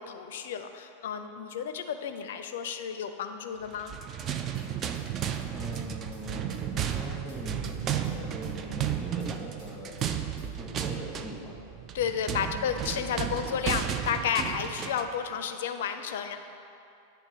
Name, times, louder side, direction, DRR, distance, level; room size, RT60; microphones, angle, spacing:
voice 1, 0.0-3.9 11.9-16.4, left 7 dB, 55° left, 8 dB, 0.4 m, -32 dB
sound 1, 3.7-15.2, right 9 dB, 30° right, 0.3 m, -33 dB
sound 2, 4.5-5.4 5.7-6.6 6.9-8.2 8.4-9.3 9.6-10.5 10.8-10.9, equal, 50° right, 1.3 m, -51 dB
voice 2, 5.5-10.0 10.6-11.6 12.4-12.7, equal, ahead, -2 dB, 1.1 m, -41 dB
9.2 x 3.4 x 5.1 m, 2.7 s
figure-of-eight pair, 90°, 0 cm